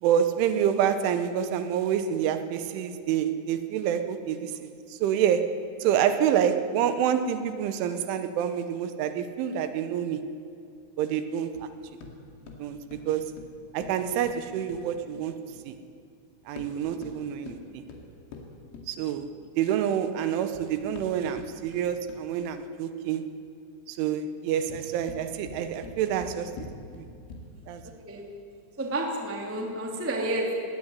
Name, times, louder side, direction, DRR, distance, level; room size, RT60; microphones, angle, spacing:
voice 1, 0.0-10.3 11.0-11.7 12.6-13.4 13.7-15.8 16.5-17.8 18.9-23.3 23.9-26.5 26.9-27.1 27.7-27.8, right 9 dB, 75° right, 10 dB, 3.2 m, -27 dB
sound 1, 11.5-15.7 16.4-19.5 20.2-22.4 24.5-27.7, left 3 dB, 85° left, 5.0 m, -46 dB
voice 2, 27.8-28.2 28.8-30.5, right 1 dB, 15° right, 1 dB, 0.5 m, -30 dB
20.0 x 17.5 x 9.8 m, 2.5 s
omnidirectional pair, 5.8 m